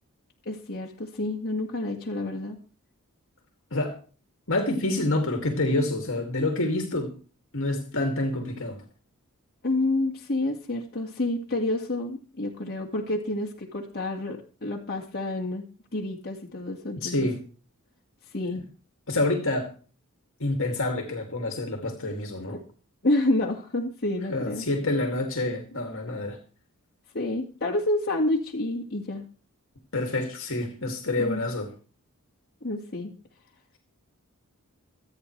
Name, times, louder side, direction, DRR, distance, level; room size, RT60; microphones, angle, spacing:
voice 1, 0.5-2.6 9.6-15.6 15.9-17.1 18.3-18.6 22.5-22.6 23.0-24.7 27.1-29.3 31.2-31.4 32.6-33.1, left 2 dB, 45° left, 2.0 m, -29 dB
voice 2, 4.5-7.1 7.5-8.8 17.0-17.4 19.1-19.7 20.4-22.5 24.3-26.4 29.9-31.7, left 2 dB, 65° left, 2.4 m, -27 dB
26.5 x 9.1 x 3.3 m
head